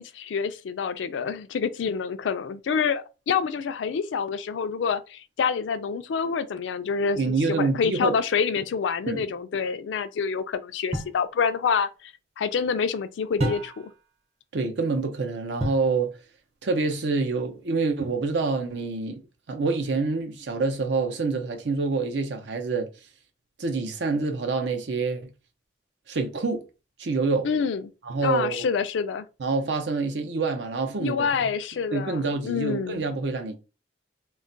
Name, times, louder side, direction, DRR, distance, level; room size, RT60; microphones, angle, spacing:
voice 1, 0.0-13.9 27.4-27.8 28.2-29.3 31.0-33.0, left 6 dB, 85° left, 0.4 m, -27 dB
voice 2, 7.2-8.2 9.1-9.3 14.5-16.2 16.6-19.2 19.5-22.9 23.6-25.3 26.1-26.6 27.0-27.5 28.1-28.7 29.4-31.3 31.9-33.5, right 4 dB, 70° right, 0.6 m, -26 dB
sound 1, 10.9-11.2 13.4-14.0 15.6-15.9 18.0-18.5, equal, 35° right, 0.9 m, -30 dB
2.3 x 2.2 x 3.8 m
head